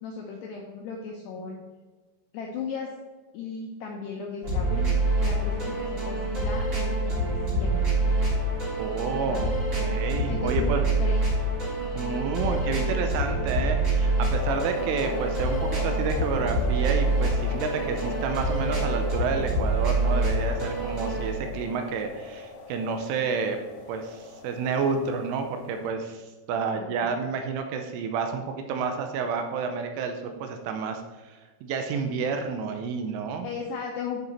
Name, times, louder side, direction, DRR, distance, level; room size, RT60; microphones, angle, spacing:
voice 1, 0.0-1.6 2.3-2.9 3.3-4.9 5.2-8.1 9.3-9.4 10.3-11.2 26.5-27.1 33.4-34.2, left 5 dB, 80° left, 0 dB, 2.4 m, -36 dB
sound 1, 4.4-21.3, right 2 dB, 30° right, 3.2 m, -26 dB
voice 2, 8.8-9.5 9.8-10.8 11.9-23.6 23.9-33.5, right 5 dB, 85° right, 6 dB, 3.0 m, -30 dB
sound 2, 14.3-25.9, left 3 dB, 65° left, 2.7 m, -40 dB
10.5 x 6.0 x 4.3 m, 1.3 s
omnidirectional pair, 5.9 m